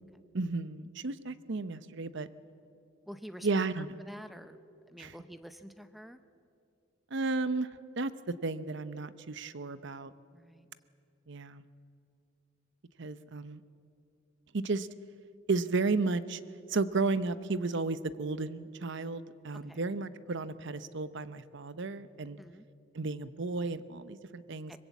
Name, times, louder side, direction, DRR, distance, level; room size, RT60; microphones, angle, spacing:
voice 1, 0.3-2.3 3.4-3.9 5.0-5.1 7.1-7.7 8.0-10.1 11.3-11.6 13.0-13.6 14.5-14.9 15.5-16.4 16.7-22.4 22.9-24.7, right 3 dB, 65° right, 14 dB, 0.8 m, -33 dB
voice 2, 3.1-3.5 4.0-4.6 4.9-6.2 10.3-10.7 19.7-19.8 22.4-22.7 24.7-24.8, equal, ahead, 10 dB, 0.7 m, -48 dB
23.5 x 21.0 x 8.3 m, 2.5 s
head